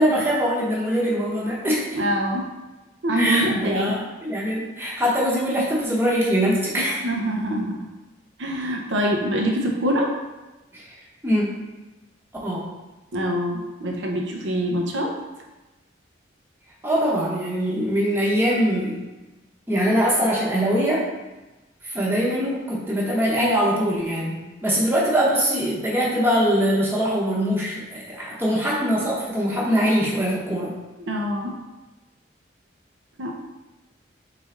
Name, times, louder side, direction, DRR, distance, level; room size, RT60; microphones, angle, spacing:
voice 1, 0.0-2.0 3.2-7.0 10.7-10.9 11.2-11.4 12.4-12.7 16.8-19.0 19.7-21.1 21.8-30.7, equal, 10° right, -5 dB, 0.8 m, -22 dB
voice 2, 1.9-2.5 3.0-3.9 6.8-7.8 8.4-10.1 13.1-15.1 31.0-31.6 33.2-33.3, equal, 70° right, 1 dB, 0.7 m, -24 dB
3.8 x 3.3 x 3.7 m, 1.1 s
head